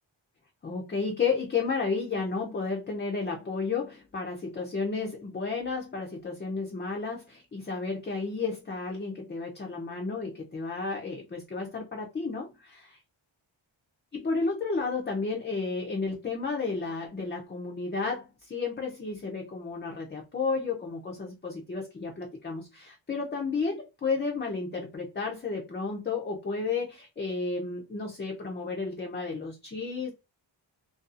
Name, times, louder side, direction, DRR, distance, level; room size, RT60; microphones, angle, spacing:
voice 1, 0.6-13.0 14.1-30.1, left 4 dB, 25° left, 0.4 m, -32 dB
2.6 x 2.3 x 2.4 m
wide cardioid pair, 120°, 47 cm